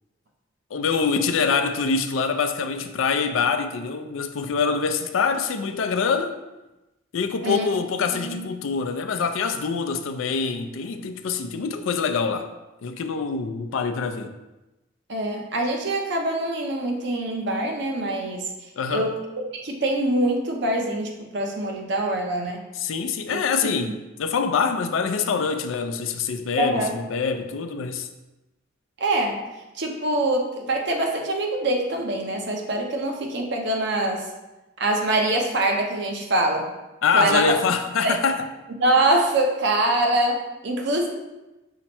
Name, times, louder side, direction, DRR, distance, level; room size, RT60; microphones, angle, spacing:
voice 1, 0.7-6.3 7.1-12.5 12.8-14.3 18.8-19.1 22.8-28.1 37.0-38.5, left 5 dB, 90° left, 0.4 m, -25 dB
voice 2, 8.1-8.5 15.1-18.5 18.9-22.7 23.3-23.4 26.6-26.9 29.0-29.4 29.7-34.3 34.8-36.7 37.1-37.5 38.0-38.1 38.8-41.1, right 1 dB, 60° right, 0.7 m, -24 dB
5.6 x 2.1 x 4.2 m
head